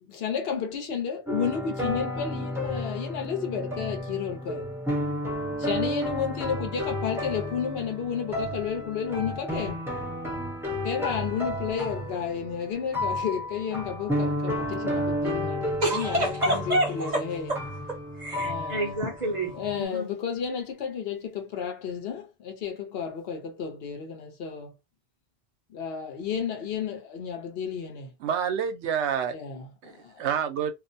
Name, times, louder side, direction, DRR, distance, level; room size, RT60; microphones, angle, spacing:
voice 1, 0.0-4.7 5.6-9.8 10.8-17.5 18.4-19.0 19.5-24.7 25.7-28.1 29.3-30.2, left 7 dB, 65° left, 0.9 m, -32 dB
sound 1, 1.3-19.8, left 1 dB, 5° right, 0.7 m, -32 dB
voice 2, 15.8-17.2 17.5-17.6 17.9-20.1, right 1 dB, 45° right, 0.7 m, -28 dB
voice 3, 28.2-29.3 29.8-30.7, right 8 dB, 90° right, 0.9 m, -28 dB
2.5 x 2.1 x 2.6 m
omnidirectional pair, 1.1 m